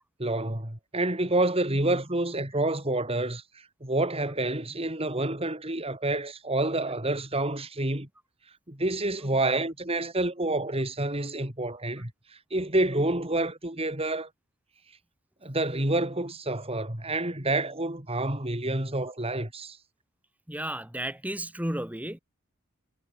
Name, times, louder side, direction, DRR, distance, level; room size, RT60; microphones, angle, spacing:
voice 1, 0.2-8.1 8.7-12.1 12.5-14.3 15.4-19.8, right 2 dB, 25° right, 3.4 m, -28 dB
voice 2, 20.5-22.2, right 1 dB, 5° right, 2.2 m, -33 dB
head